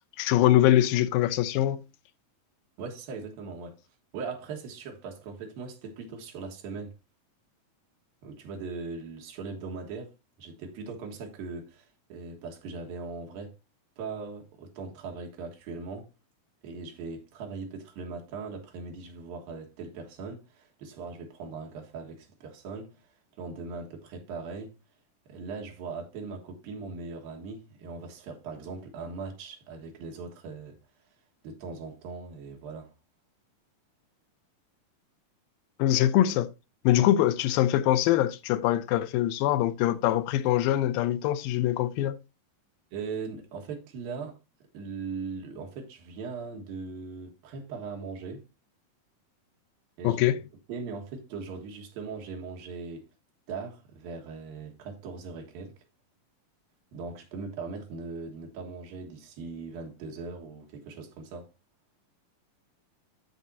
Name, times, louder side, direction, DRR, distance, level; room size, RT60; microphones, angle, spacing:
voice 1, 0.2-1.8 35.8-36.5 36.8-42.2 50.0-50.4, left 13 dB, 85° left, 2.5 m, -23 dB
voice 2, 2.8-3.8 4.1-7.0 8.2-10.1 10.4-13.6 14.0-16.1 16.6-23.0 23.4-24.8 25.3-30.7 31.4-32.9 42.9-44.4 44.7-48.4 50.0-50.2 50.7-53.0 53.5-55.8 56.9-61.5, right 4 dB, 80° right, 3.3 m, -39 dB
10.5 x 7.5 x 2.7 m
omnidirectional pair, 4.1 m